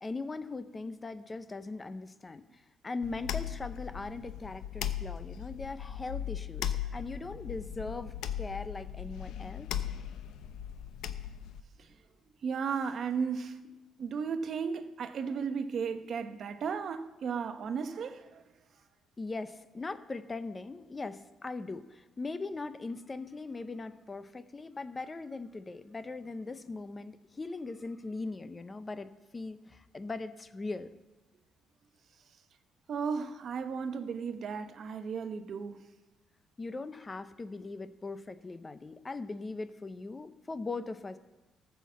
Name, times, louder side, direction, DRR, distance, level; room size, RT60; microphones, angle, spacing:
voice 1, 0.0-9.8 19.2-30.9 36.6-41.2, left 3 dB, 20° left, 0.5 m, -40 dB
sound 1, 3.0-11.6, left 10 dB, 80° left, 0.6 m, -38 dB
voice 2, 12.4-13.6 14.0-18.4 32.9-35.8, right 6 dB, 50° right, 0.8 m, -35 dB
13.5 x 5.8 x 7.3 m
cardioid pair, 125°, 0 cm